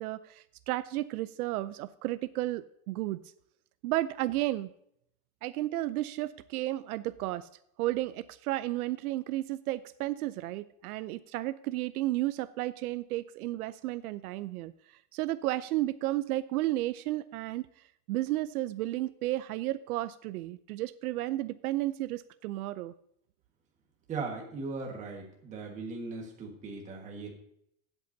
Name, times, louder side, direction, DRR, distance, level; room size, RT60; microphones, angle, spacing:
voice 1, 0.0-3.2 3.8-4.7 5.4-7.5 7.8-14.7 15.1-17.7 18.1-22.9, right 16 dB, 80° right, 14 dB, 0.6 m, -33 dB
voice 2, 24.1-27.3, right 4 dB, 15° right, 0 dB, 1.5 m, -38 dB
16.0 x 8.2 x 2.7 m, 0.72 s
supercardioid pair, 175°, 44 cm